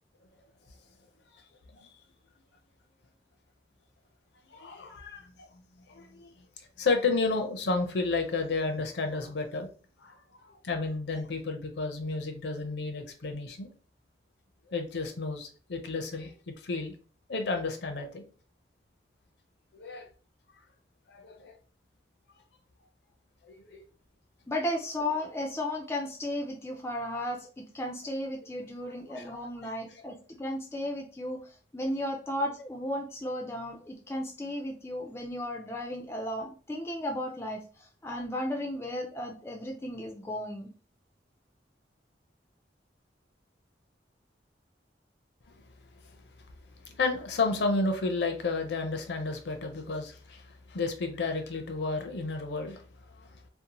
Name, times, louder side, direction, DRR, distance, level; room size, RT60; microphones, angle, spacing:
voice 1, 4.5-5.3 5.9-6.4 6.8-9.7 10.0-10.2 10.4-13.7 14.7-17.0 17.3-18.2 19.7-20.1 21.1-21.6 23.5-23.8 29.1-29.4 45.5-45.6 46.0-46.2 46.8-52.8 53.2-53.3, left 3 dB, 70° left, 5 dB, 0.5 m, -32 dB
voice 2, 24.5-40.7, left 1 dB, 15° left, 1 dB, 0.3 m, -35 dB
2.6 x 2.1 x 2.8 m, 0.39 s
head